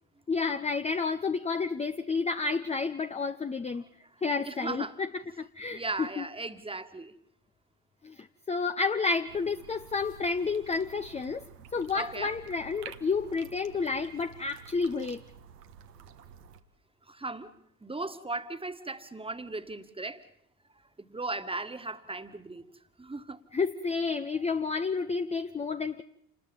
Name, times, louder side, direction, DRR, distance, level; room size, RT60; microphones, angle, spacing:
voice 1, 0.3-3.8 4.2-5.1 5.4-6.3 8.0-11.4 11.7-15.2 23.5-26.0, left 4 dB, 15° left, 0.8 m, -30 dB
voice 2, 4.4-4.9 5.7-7.1 11.9-12.3 17.1-17.5 17.8-20.2 21.0-22.6 23.0-23.4, right 3 dB, 10° right, 1.8 m, -37 dB
sound 1, 9.3-16.6, right 7 dB, 75° right, 1.5 m, -50 dB
28.5 x 20.5 x 5.6 m
figure-of-eight pair, 60°, 48 cm